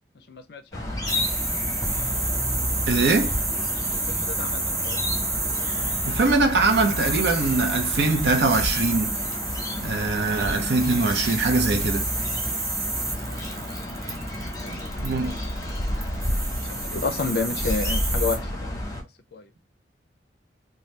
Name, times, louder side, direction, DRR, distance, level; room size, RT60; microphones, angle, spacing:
voice 1, 0.3-0.9 3.9-6.0 12.7-14.0 14.6-14.9 15.2-15.5 16.7-18.8 19.3-19.4, left 4 dB, 60° left, 0.4 m, -32 dB
sound 1, 0.7-19.0, left 1 dB, 20° left, 0.8 m, -31 dB
sound 2, 1.1-18.4, right 3 dB, 20° right, 0.6 m, -30 dB
voice 2, 2.9-3.4 6.1-9.1 9.8-12.1 14.7-15.4, right 3 dB, 70° right, 0.6 m, -22 dB
2.7 x 2.2 x 3.2 m
head